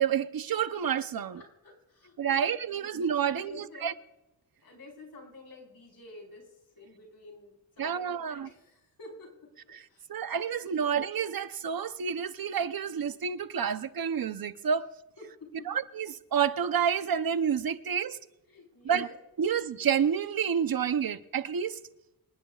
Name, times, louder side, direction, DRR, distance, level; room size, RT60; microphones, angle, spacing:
voice 1, 0.0-1.4 2.2-3.9 7.8-8.5 10.1-14.9 15.7-18.2 18.8-19.1 19.4-21.8, right 7 dB, 70° right, 0.8 m, -29 dB
voice 2, 1.3-2.9 3.2-3.9 4.6-10.1 10.7-10.9 15.2-15.7 18.5-19.1, left 2 dB, 75° left, 4.7 m, -50 dB
27.0 x 19.5 x 2.4 m
wide cardioid pair, 155°, 37 cm